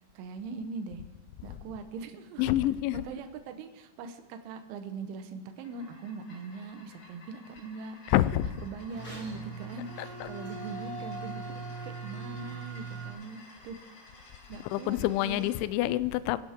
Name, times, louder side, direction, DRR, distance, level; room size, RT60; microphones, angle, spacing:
voice 1, 0.2-1.0 1.4-2.5 3.0-8.1 8.4-13.8 14.5-15.5, right 4 dB, 80° right, 3.4 m, -41 dB
voice 2, 2.4-3.0 8.1-8.5 10.0-10.3 14.7-16.4, left 14 dB, 85° left, 2.8 m, -27 dB
sound 1, 5.5-15.6, left 2 dB, 60° left, 4.8 m, -54 dB
sound 2, 8.9-13.1, right 3 dB, 20° left, 3.1 m, -40 dB
23.5 x 11.0 x 3.6 m
omnidirectional pair, 5.8 m